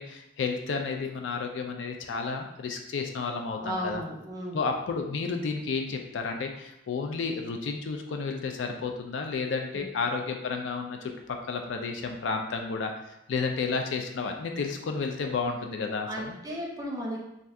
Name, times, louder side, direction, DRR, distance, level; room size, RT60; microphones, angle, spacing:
voice 1, 0.0-4.0 4.5-16.4, left 4 dB, 70° left, 4 dB, 0.4 m, -32 dB
voice 2, 3.6-4.6 9.7-9.8 16.0-17.2, equal, 20° right, -3 dB, 0.6 m, -35 dB
2.6 x 2.3 x 3.3 m, 0.82 s
head